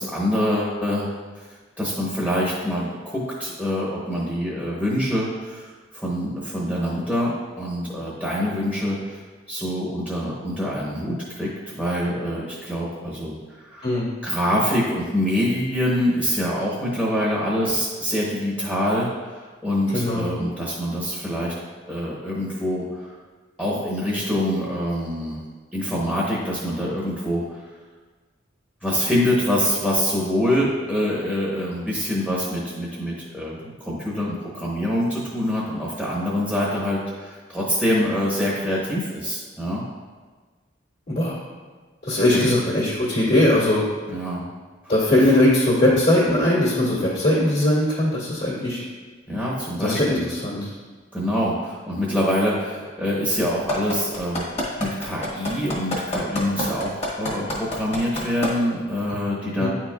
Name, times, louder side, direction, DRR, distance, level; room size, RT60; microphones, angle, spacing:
voice 1, 0.0-1.5 1.8-9.2 9.5-13.9 14.2-21.5 21.9-23.1 23.6-25.4 25.7-27.6 28.8-39.8 42.3-42.5 44.1-44.4 44.8-44.9 49.3-50.3 51.1-54.4 54.8-59.7, equal, 5° left, -6 dB, 0.9 m, -25 dB
voice 2, 13.8-14.1 19.9-20.2 41.1-41.4 42.0-43.8 44.9-48.8 49.7-50.7 59.6-59.7, left 1 dB, 55° left, -8 dB, 1.7 m, -20 dB
sound 1, 53.7-58.5 59.0-59.1, left 1 dB, 30° left, 1.4 m, -26 dB
9.5 x 4.5 x 2.4 m, 1.4 s
head